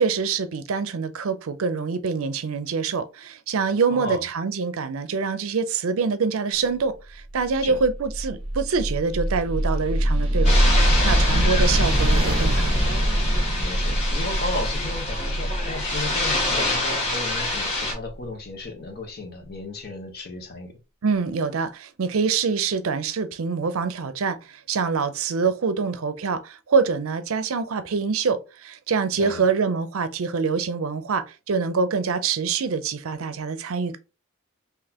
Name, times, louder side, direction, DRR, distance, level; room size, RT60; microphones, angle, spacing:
voice 1, 0.0-12.9 21.0-34.0, right 5 dB, 70° right, 0.5 m, -25 dB
voice 2, 3.9-4.2 7.6-7.8 13.6-20.8 29.2-29.4, left 2 dB, 45° left, 1.0 m, -34 dB
sound 1, 7.3-18.1, right 1 dB, 25° right, 1.1 m, -23 dB
sound 2, 10.4-17.9, left 2 dB, 30° left, 1.5 m, -27 dB
4.0 x 2.8 x 2.8 m
head